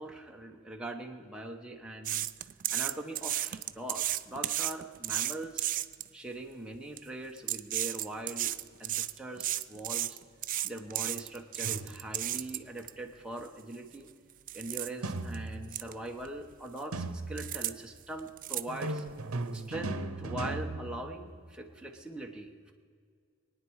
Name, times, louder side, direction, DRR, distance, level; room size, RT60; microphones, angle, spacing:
voice 1, 0.0-2.3 2.7-5.7 6.1-10.2 10.6-14.1 14.5-19.0 19.5-22.7, right 1 dB, 5° right, 1 dB, 1.0 m, -41 dB
sound 1, 2.0-6.1 6.7-7.0 7.4-12.9 13.4-13.5 13.9-14.1 14.5-14.9 15.3-15.4 15.7-15.9 16.2-16.8 17.4-17.7 18.0-19.1 19.5-19.6, right 13 dB, 40° right, 0.4 m, -33 dB
sound 2, 11.6-12.3 15.0-15.9 16.9-17.6 18.7-21.6, right 2 dB, 90° right, 0.9 m, -37 dB
23.0 x 9.6 x 4.7 m, 2.1 s
head